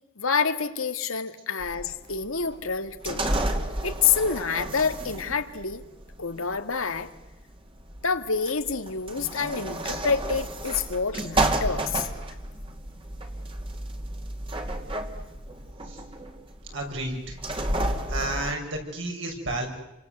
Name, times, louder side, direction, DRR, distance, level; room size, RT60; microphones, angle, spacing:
voice 1, 0.2-3.3 3.8-5.8 6.2-7.1 8.0-12.1, left 5 dB, 90° left, 8 dB, 1.9 m, -27 dB
sound 1, 1.6-18.5, right 1 dB, 25° right, 2.5 m, -31 dB
voice 2, 16.7-17.4 18.1-19.7, right 1 dB, 65° right, 2 dB, 6.4 m, -31 dB
29.5 x 25.0 x 8.0 m, 0.95 s
head